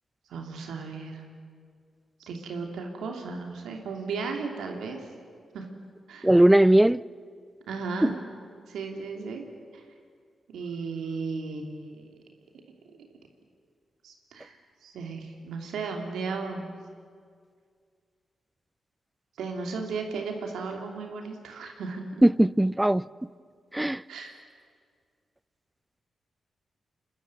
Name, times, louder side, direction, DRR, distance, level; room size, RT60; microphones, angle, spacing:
voice 1, 0.3-1.2 2.2-5.0 5.5-5.7 6.1-6.3 7.7-8.2 8.7-9.4 9.7-9.8 10.5-12.1 14.0-16.7 19.4-22.0 24.1-24.3, right 4 dB, 85° right, 2.8 m, -35 dB
voice 2, 6.2-7.0 8.0-8.1 22.2-23.0 23.7-24.0, right 1 dB, 10° right, 0.5 m, -19 dB
28.5 x 12.5 x 9.6 m
supercardioid pair, 45°, 0 cm